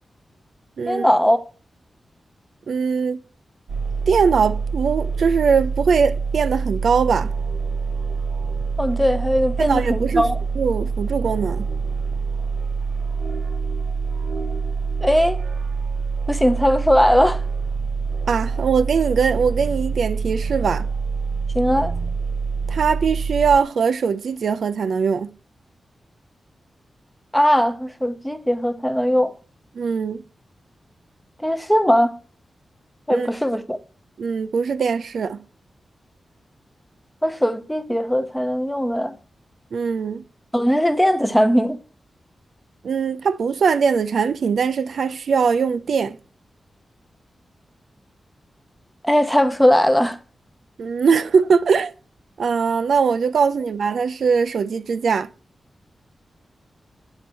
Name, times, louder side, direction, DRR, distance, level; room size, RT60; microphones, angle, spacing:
voice 1, 0.9-1.4 8.8-10.4 15.0-15.4 16.3-17.4 21.5-21.9 27.3-29.3 31.4-32.1 33.1-33.8 37.2-39.1 40.5-41.8 49.0-50.2, equal, 5° left, 0.7 m, -19 dB
voice 2, 2.7-3.2 4.1-7.3 9.6-10.3 10.6-11.7 18.3-20.9 22.7-25.3 29.8-30.2 33.1-33.3 34.2-35.4 39.7-40.2 42.8-46.2 50.8-51.9 52.4-55.3, right 5 dB, 70° right, 0.4 m, -21 dB
sound 1, 3.7-23.6, right 5 dB, 90° right, 1.6 m, -26 dB
9.4 x 4.5 x 6.2 m
wide cardioid pair, 170°, 0 cm